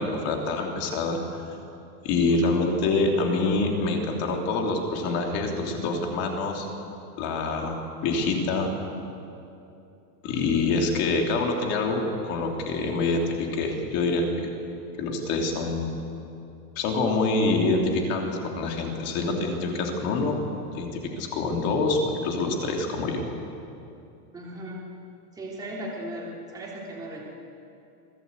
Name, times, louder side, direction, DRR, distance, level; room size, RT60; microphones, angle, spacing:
voice 1, 0.0-1.4 2.0-6.7 7.2-8.7 10.2-14.5 15.0-15.9 16.7-20.4 20.7-23.2, left 3 dB, 35° left, 1 dB, 3.0 m, -26 dB
voice 2, 24.3-24.8 25.3-27.3, right 1 dB, 10° right, -5 dB, 3.3 m, -37 dB
25.5 x 16.5 x 8.2 m, 2.7 s
supercardioid pair, 175°, 45 cm